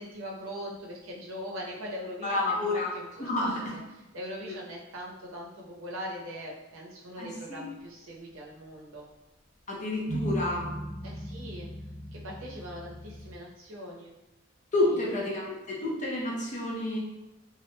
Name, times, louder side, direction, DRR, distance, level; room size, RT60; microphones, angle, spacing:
voice 1, 0.0-3.8 4.1-9.1 11.0-11.7 12.1-14.1 14.8-15.2, equal, 75° right, -2 dB, 0.6 m, -41 dB
voice 2, 2.2-2.9 3.2-3.7 4.5-4.6 7.2-7.6 9.7-10.7 14.7-17.0, left 2 dB, 35° left, -3 dB, 0.6 m, -29 dB
sound 1, 10.1-13.4, right 1 dB, 80° left, 0.8 m, -37 dB
2.3 x 2.1 x 3.0 m, 1.0 s
head